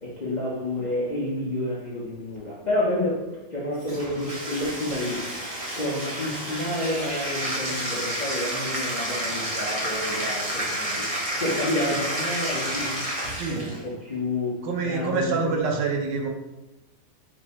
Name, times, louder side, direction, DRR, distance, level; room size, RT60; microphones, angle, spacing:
voice 1, 0.0-5.2 5.8-11.1 11.4-13.0 13.5-15.5, left 1 dB, 40° left, -7 dB, 0.6 m, -29 dB
Bathtub (filling or washing), 3.8-13.8, right 1 dB, 40° right, 0.5 m, -30 dB
voice 2, 13.3-13.7 14.6-16.3, right 4 dB, 90° right, 2 dB, 1.4 m, -26 dB
4.4 x 2.7 x 4.1 m, 1.0 s
omnidirectional pair, 1.9 m